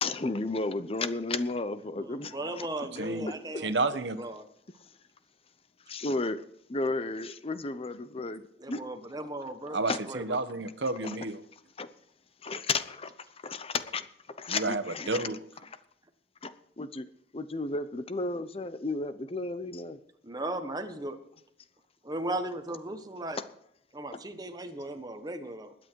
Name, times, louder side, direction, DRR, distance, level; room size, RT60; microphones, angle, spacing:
voice 1, 0.0-2.7 3.3-3.4 5.9-6.4 6.7-8.4 8.7-8.8 9.9-10.0 11.0-11.2 11.8-11.9 12.4-13.1 13.4-14.1 14.4-15.2 16.4-17.1 17.3-20.0, left 3 dB, 35° left, 12 dB, 0.7 m, -33 dB
voice 2, 2.1-3.7 4.2-4.4 8.6-10.2 20.2-21.2 22.0-23.4 23.9-25.7, right 1 dB, 20° right, 7 dB, 1.3 m, -37 dB
voice 3, 2.8-4.2 9.7-11.4 14.5-15.4, right 3 dB, 85° right, 10 dB, 1.2 m, -31 dB
21.0 x 8.9 x 4.6 m, 0.74 s
head